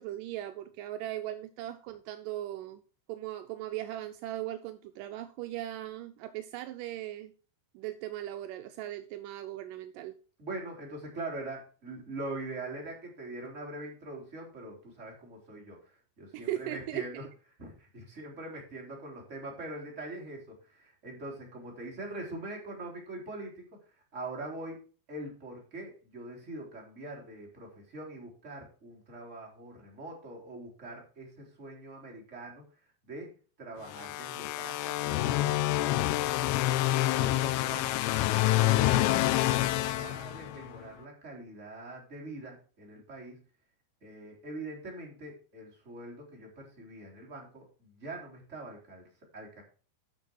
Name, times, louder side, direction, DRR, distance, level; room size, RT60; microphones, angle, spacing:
voice 1, 0.0-2.8 3.1-7.3 7.7-10.1 16.3-17.0, right 13 dB, 85° right, 8 dB, 1.9 m, -38 dB
voice 2, 10.4-17.1 17.6-24.8 25.1-32.6 33.0-33.3 33.6-36.6 36.9-38.0 38.5-43.4 44.0-49.0 49.3-49.6, right 2 dB, 20° right, -1 dB, 3.3 m, -43 dB
sound 1, 33.9-40.8, left 15 dB, 80° left, 2.6 m, -27 dB
10.5 x 6.3 x 4.6 m, 0.38 s
omnidirectional pair, 4.6 m